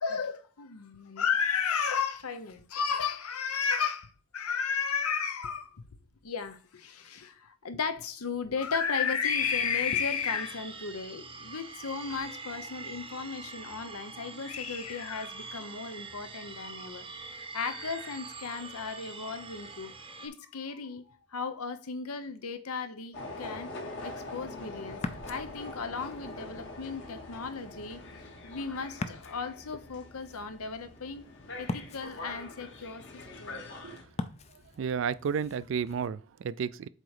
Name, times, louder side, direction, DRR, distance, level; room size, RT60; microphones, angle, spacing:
voice 1, 0.0-5.8 6.2-23.7 24.0-25.0 25.3-28.0 28.4-31.2 31.6-33.0 33.4-33.6, left 6 dB, 85° left, 0.8 m, -34 dB
sound 1, 9.2-20.3, right 4 dB, 25° right, 0.7 m, -44 dB
sound 2, 23.1-34.0, left 2 dB, 55° left, 1.4 m, -44 dB
Ocean, 24.9-36.1, left 3 dB, 30° left, 0.4 m, -44 dB
voice 2, 34.8-36.9, right 6 dB, 60° right, 0.3 m, -32 dB
7.7 x 3.0 x 4.8 m
head